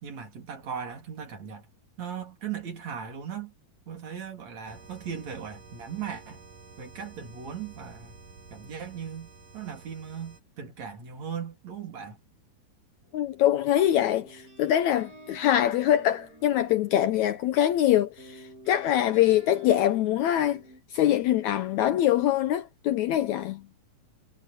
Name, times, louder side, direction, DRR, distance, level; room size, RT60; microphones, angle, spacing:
voice 1, 0.0-1.7 2.0-3.5 3.9-6.4 6.8-8.1 8.5-12.2, right 7 dB, 55° right, 4.1 m, -38 dB
sound 1, 4.7-10.4, right 4 dB, 80° right, 7.3 m, -50 dB
sound 2, 13.0-13.6 14.0-17.8 18.2-20.8, right 1 dB, 25° right, 8.0 m, -50 dB
voice 2, 13.1-20.6 20.9-23.6, left 12 dB, 75° left, 1.8 m, -24 dB
omnidirectional pair, 3.9 m